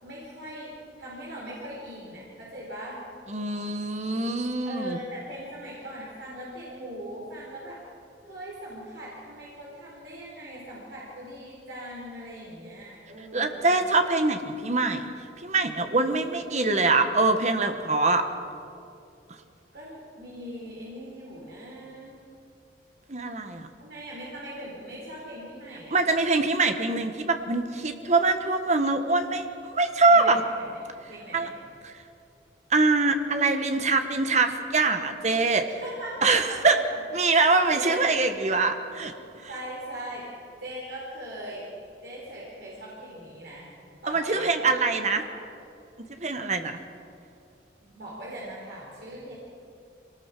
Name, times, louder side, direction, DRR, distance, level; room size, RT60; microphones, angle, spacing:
voice 1, 0.0-3.0 4.6-7.8 8.2-13.7 19.7-22.1 23.8-26.0 30.1-30.8 31.1-31.6 35.7-36.8 37.6-38.2 39.5-40.3 40.6-41.7 42.0-43.7 44.0-45.3 47.8-49.3, right 1 dB, 70° right, -5 dB, 4.5 m, -40 dB
voice 2, 3.3-5.0 13.3-15.1 15.4-18.2 23.1-23.7 25.9-30.4 31.3-31.5 31.8-31.9 32.7-35.6 36.2-36.8 37.1-39.1 44.1-45.2 46.2-46.8, right 3 dB, 40° right, 7 dB, 1.3 m, -24 dB
23.5 x 19.0 x 6.1 m, 2.7 s
head